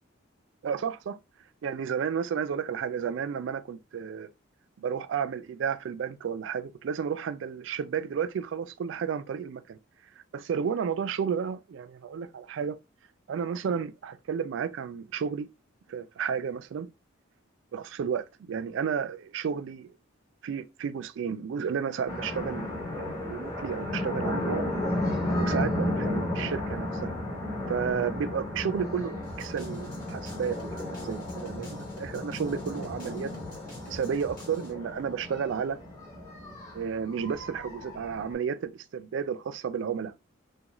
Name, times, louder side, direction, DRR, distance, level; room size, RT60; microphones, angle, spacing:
voice 1, 0.6-1.2 1.6-4.3 4.8-9.8 10.3-12.8 13.3-15.5 15.9-16.9 17.7-19.9 20.4-22.7 23.0-24.6 25.4-27.1 27.7-33.3 33.9-35.8 36.7-40.1, right 7 dB, 65° right, 0.3 m, -32 dB
sound 1, 22.1-38.3, left 1 dB, 15° left, 0.9 m, -33 dB
sound 2, 29.2-34.7, equal, 45° left, 1.1 m, -49 dB
2.4 x 2.3 x 2.9 m
head